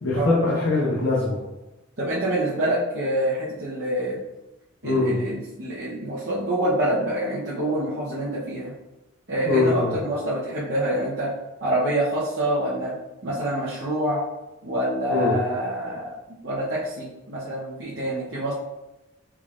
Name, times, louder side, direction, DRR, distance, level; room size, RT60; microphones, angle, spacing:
voice 1, 0.0-1.4 4.8-5.2 9.4-10.0 15.1-15.4, left 2 dB, 90° left, -5 dB, 0.8 m, -22 dB
voice 2, 2.0-4.2 4.8-8.7 9.3-11.3 11.6-12.9 13.2-14.2 14.6-16.1 16.4-18.5, right 1 dB, 55° right, -9 dB, 0.8 m, -26 dB
4.5 x 3.7 x 2.4 m, 1.0 s
head